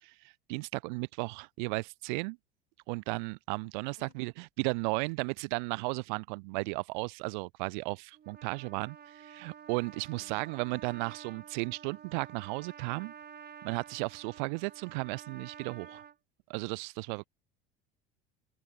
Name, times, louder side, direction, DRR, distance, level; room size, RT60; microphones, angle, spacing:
voice 1, 0.0-2.4 2.9-4.3 4.6-13.1 13.6-16.0 16.5-17.3, right 29 dB, 50° right, 0.6 m, -35 dB
voice 2, 3.8-4.2 10.1-10.5 17.1-17.3, left 23 dB, 50° left, 6.5 m, -61 dB
Trumpet, 8.1-16.1, right 8 dB, 35° right, 5.5 m, -50 dB
figure-of-eight pair, 70°, 30 cm